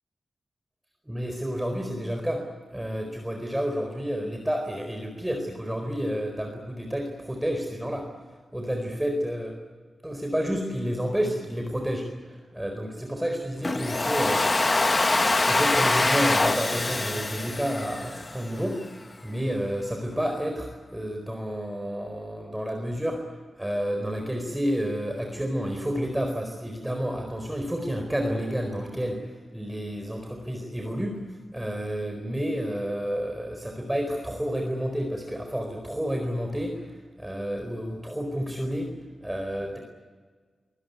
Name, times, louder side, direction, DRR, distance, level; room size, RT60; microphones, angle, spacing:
voice 1, 1.1-2.5 2.7-8.1 8.5-9.6 10.0-14.4 15.4-31.2 31.5-36.9 37.2-38.9 39.2-39.8, equal, 10° right, 3 dB, 4.4 m, -30 dB
Domestic sounds home sounds, 13.6-18.6, left 2 dB, 30° left, 1.5 m, -24 dB
24.0 x 19.5 x 9.5 m, 1.5 s
cardioid pair, 70°, 0 cm